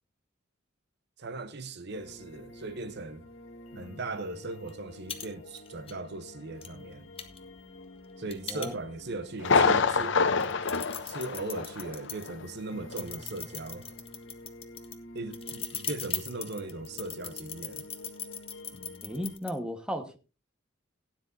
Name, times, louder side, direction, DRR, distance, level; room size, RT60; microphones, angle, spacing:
voice 1, 1.2-3.3 3.8-7.1 8.2-10.3 11.0-13.9 15.1-17.9, right 2 dB, 55° right, 0.9 m, -38 dB
sound 1, 1.9-19.4, left 1 dB, 90° left, 1.6 m, -49 dB
sound 2, 4.7-4.8 5.1-5.3 5.6-5.9 6.6-6.7 7.2-9.2 9.7-9.8 10.3-12.3 12.9-19.5, left 9 dB, 30° left, 1.4 m, -39 dB
Thunder, 9.4-12.0 12.3-12.4 12.9-13.0, left 4 dB, 65° left, 0.8 m, -26 dB
voice 2, 19.0-20.2, equal, 5° right, 1.3 m, -35 dB
17.0 x 10.0 x 2.7 m
head